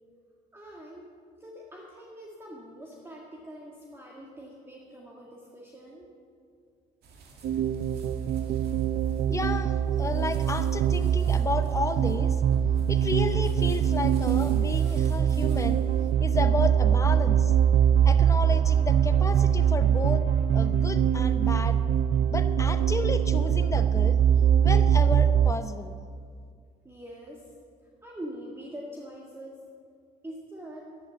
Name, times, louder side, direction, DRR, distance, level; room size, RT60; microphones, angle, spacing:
voice 1, 0.5-1.1 1.4-6.1 26.8-27.5 28.0-29.6 30.2-31.0, equal, 15° right, -2 dB, 1.8 m, -43 dB
sound 1, 7.0-16.1, right 3 dB, 70° right, 2.2 m, -48 dB
sound 2, 7.4-25.5, right 9 dB, 55° right, 0.4 m, -23 dB
voice 2, 9.3-12.4 12.9-15.8 16.2-17.5 18.0-20.3 20.5-21.8 22.3-24.2 24.6-25.9, left 3 dB, 20° left, 9 dB, 0.9 m, -32 dB
11.0 x 11.0 x 7.0 m, 2.2 s
cardioid pair, 110°, 17 cm